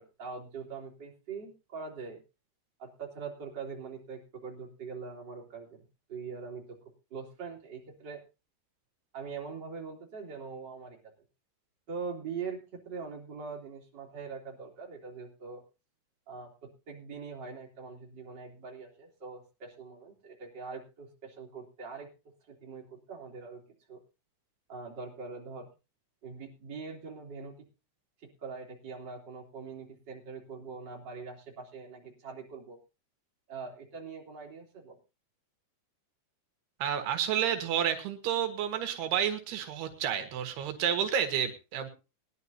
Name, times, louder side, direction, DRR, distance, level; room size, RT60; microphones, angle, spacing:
voice 1, 0.0-2.2 2.8-6.8 7.1-8.2 9.1-11.0 11.9-15.6 16.3-22.1 22.5-23.6 23.9-24.0 24.7-25.7 26.2-27.6 28.2-32.8 33.5-35.0, right 5 dB, 30° right, -1 dB, 3.6 m, -43 dB
voice 2, 36.8-41.9, right 9 dB, 85° right, 7 dB, 3.5 m, -30 dB
21.0 x 11.0 x 2.8 m, 0.30 s
omnidirectional pair, 4.6 m